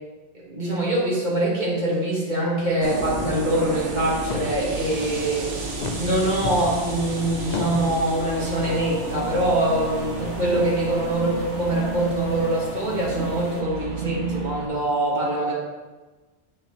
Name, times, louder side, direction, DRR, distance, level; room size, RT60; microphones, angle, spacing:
voice 1, 0.3-5.5 6.0-15.5, right 1 dB, 40° right, -5 dB, 1.7 m, -24 dB
sound 1, 2.6-2.9 3.2-3.6 3.9-4.0 4.3-5.1 5.7-7.1 7.5-7.9, left 5 dB, 50° left, 0.5 m, -32 dB
sound 2, 2.8-14.7, right 4 dB, 90° right, 1.3 m, -31 dB
sound 3, 4.7-13.6, left 2 dB, 90° left, 1.2 m, -43 dB
6.7 x 6.6 x 3.1 m, 1.2 s
omnidirectional pair, 1.2 m